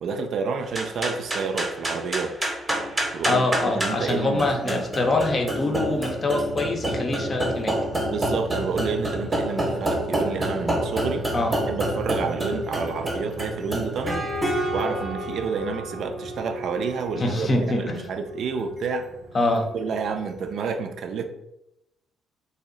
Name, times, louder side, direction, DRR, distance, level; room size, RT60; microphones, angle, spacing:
voice 1, 0.0-2.3 3.1-4.8 8.1-11.3 11.7-14.3 14.7-19.1 19.7-21.2, right 5 dB, 70° right, 6 dB, 0.3 m, -29 dB
sound 1, 0.7-20.2, right 1 dB, 20° right, 0.7 m, -29 dB
voice 2, 3.3-7.8 11.3-11.6 17.1-18.0 19.3-19.7, left 2 dB, 40° left, 4 dB, 0.6 m, -24 dB
2.6 x 2.0 x 3.7 m, 0.84 s
cardioid pair, 90°, 0 cm